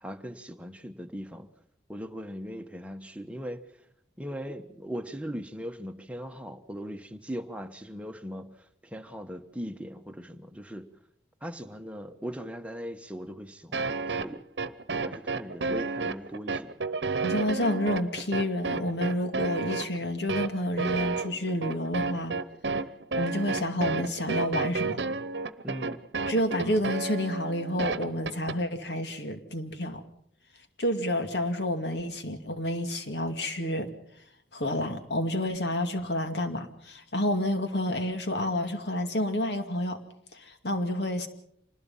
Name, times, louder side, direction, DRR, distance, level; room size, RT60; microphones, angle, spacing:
voice 1, 0.0-1.5 1.9-3.6 4.2-8.5 8.9-10.9 11.4-13.9 14.2-14.4 15.0-16.7 25.6-26.0, equal, 5° right, 6 dB, 1.2 m, -39 dB
sound 1, 13.7-28.6, right 4 dB, 75° right, 1.0 m, -31 dB
voice 2, 17.2-22.4 23.2-25.0 26.3-30.0 30.8-33.9 34.5-40.0 40.3-41.3, left 1 dB, 70° left, 7 dB, 2.4 m, -29 dB
26.5 x 20.0 x 5.7 m, 0.71 s
head